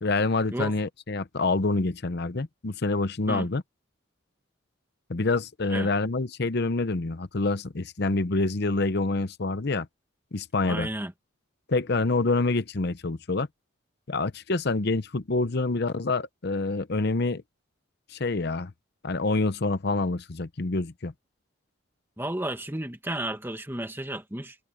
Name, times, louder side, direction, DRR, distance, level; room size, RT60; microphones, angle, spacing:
voice 1, 0.0-3.6 5.1-9.9 10.3-10.9 11.7-13.5 14.1-17.4 18.1-18.7 19.0-21.1, left 3 dB, 50° left, 0.8 m, -27 dB
voice 2, 10.7-11.1 22.2-24.6, right 1 dB, 10° right, 1.7 m, -32 dB
head